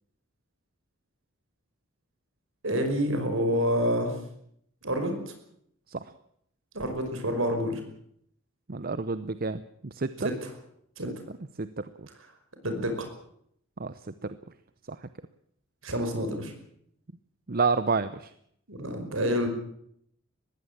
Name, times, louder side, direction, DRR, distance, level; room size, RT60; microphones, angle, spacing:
voice 1, 2.6-4.2 4.8-5.1 6.7-7.8 10.2-10.5 11.0-11.1 12.6-13.1 15.8-16.5 18.7-19.5, equal, 65° right, 6 dB, 5.5 m, -28 dB
voice 2, 8.7-10.3 11.6-11.7 13.8-13.9 14.2-14.4 17.5-18.3, right 4 dB, 45° right, 14 dB, 0.7 m, -29 dB
20.5 x 15.5 x 8.8 m, 0.71 s
head